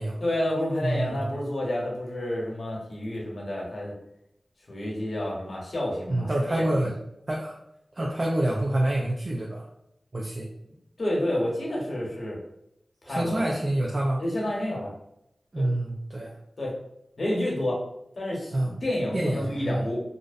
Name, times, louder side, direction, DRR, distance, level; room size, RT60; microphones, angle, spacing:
voice 1, 0.2-3.9 4.7-6.9 11.0-12.4 13.0-13.5 14.2-14.9 15.6-15.7 16.6-16.7 17.2-17.8 18.2-20.0, left 1 dB, 65° left, -3 dB, 0.8 m, -29 dB
voice 2, 0.8-1.3 6.1-6.9 7.3-7.6 7.9-9.6 10.1-10.5 13.1-14.2 15.5-16.3 18.5-18.7 19.1-19.9, right 1 dB, 45° right, -2 dB, 0.4 m, -27 dB
2.4 x 2.0 x 2.5 m, 0.79 s
cardioid pair, 45°, 0 cm